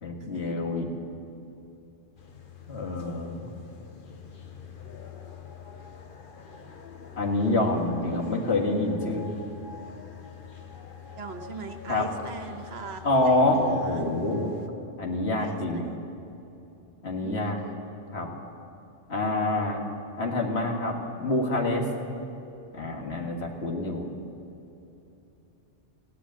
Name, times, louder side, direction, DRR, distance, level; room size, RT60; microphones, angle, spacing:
voice 1, 0.0-0.9 2.7-3.5 7.2-9.3 11.9-12.0 13.0-14.5 15.0-15.8 17.0-17.6 18.1-18.3 19.1-19.8 20.2-21.9 22.7-24.0, left 2 dB, 70° left, 0 dB, 2.1 m, -26 dB
sound 1, 2.2-14.7, left 7 dB, 50° left, 1.1 m, -45 dB
voice 2, 11.2-14.1 15.4-16.0 17.2-17.8, right 5 dB, 70° right, 6 dB, 1.3 m, -41 dB
15.0 x 10.0 x 8.6 m, 2.9 s
omnidirectional pair, 1.1 m